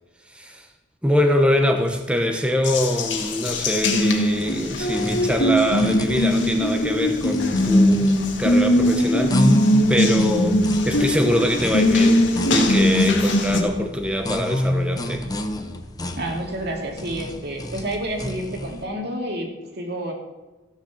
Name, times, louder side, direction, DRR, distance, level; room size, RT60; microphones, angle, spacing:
voice 1, 0.3-0.7 1.0-9.6 9.9-15.3, equal, 5° right, 4 dB, 1.0 m, -24 dB
Water tap faucet, 2.6-13.6, left 1 dB, 80° left, 2.0 m, -20 dB
sound 1, 4.4-18.8, left 1 dB, 20° left, 1.0 m, -30 dB
voice 2, 16.2-20.1, right 1 dB, 60° right, 2 dB, 2.4 m, -29 dB
14.5 x 7.2 x 7.2 m, 1.2 s
head